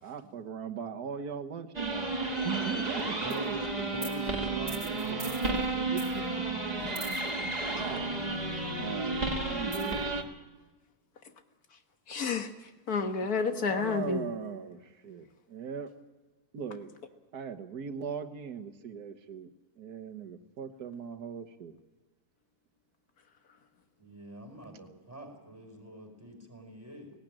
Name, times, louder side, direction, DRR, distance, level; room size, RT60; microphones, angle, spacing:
voice 1, 0.0-3.8 4.2-6.6 7.7-10.0 13.5-15.9 16.5-16.9 17.3-21.8, right 7 dB, 90° right, 6 dB, 1.7 m, -40 dB
sound 1, 1.7-10.2, right 2 dB, 25° right, 2.1 m, -32 dB
voice 2, 3.0-5.5 24.0-27.1, right 1 dB, 10° right, 3 dB, 4.5 m, -45 dB
voice 3, 6.8-7.3 11.7-11.8 12.1-14.3, left 4 dB, 75° left, 7 dB, 1.9 m, -31 dB
18.0 x 18.0 x 8.9 m, 1.2 s
omnidirectional pair, 1.6 m